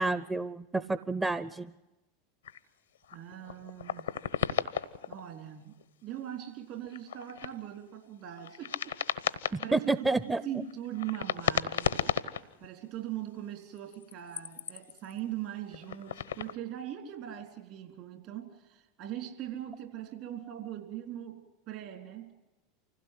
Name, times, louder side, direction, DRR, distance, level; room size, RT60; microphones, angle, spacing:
voice 1, 0.0-1.7 9.5-10.4, right 3 dB, 10° right, 14 dB, 0.7 m, -29 dB
sound 1, 2.4-2.6 3.0-5.2 5.8-5.9 6.8-7.5 8.3-9.9 10.7-12.7 13.8-15.2 15.7-16.6, left 8 dB, 90° left, 0.9 m, -34 dB
voice 2, 3.1-4.2 5.1-5.7 6.0-8.9 9.6-12.0 12.6-21.4 21.7-22.3, right 11 dB, 55° right, 5 dB, 4.1 m, -40 dB
25.5 x 16.5 x 7.9 m, 1.0 s
hypercardioid pair, 90°, 0 cm